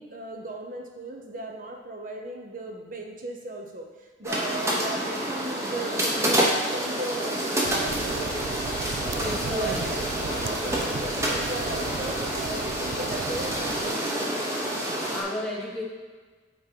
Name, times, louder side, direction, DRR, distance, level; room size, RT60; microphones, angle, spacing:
voice 1, 0.0-8.4 9.1-14.5, right 2 dB, 45° right, 2 dB, 0.9 m, -37 dB
sound 1, 4.2-15.2, right 1 dB, 15° right, 0.9 m, -28 dB
sound 2, 7.6-13.9, right 5 dB, 65° right, 0.4 m, -37 dB
voice 2, 9.0-10.0 14.9-15.8, left 1 dB, 5° left, -5 dB, 1.5 m, -33 dB
8.2 x 3.9 x 4.6 m, 1.4 s
head